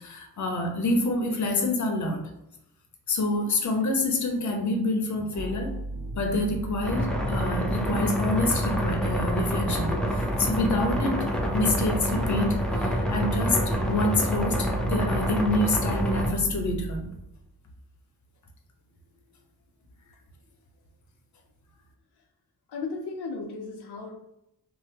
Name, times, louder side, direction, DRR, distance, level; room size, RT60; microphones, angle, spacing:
voice 1, 0.0-2.2 3.1-5.7 6.2-11.2 11.5-13.6 13.9-17.1, left 2 dB, 50° left, 2 dB, 0.7 m, -27 dB
sound 1, 5.3-17.5, right 1 dB, 60° right, 0.7 m, -36 dB
sound 2, 6.8-16.3, equal, ahead, 0.5 m, -27 dB
voice 2, 22.7-24.1, left 4 dB, 90° left, 1 dB, 0.6 m, -35 dB
3.2 x 2.1 x 3.2 m, 0.83 s
wide cardioid pair, 95°, 38 cm